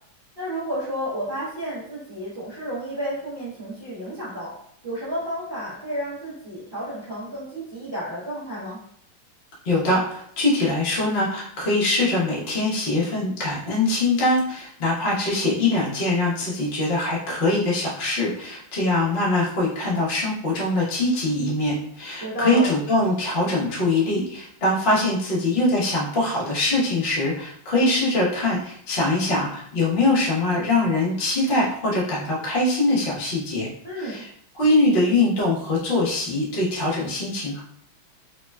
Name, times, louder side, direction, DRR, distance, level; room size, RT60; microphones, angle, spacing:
voice 1, 0.4-4.5 4.8-8.8 22.2-22.7 33.8-34.2, equal, 70° right, -11 dB, 0.5 m, -31 dB
voice 2, 9.6-33.7 34.0-34.3 34.5-37.6, left 2 dB, 50° left, -6 dB, 0.6 m, -23 dB
3.5 x 2.1 x 2.3 m, 0.67 s
omnidirectional pair, 2.4 m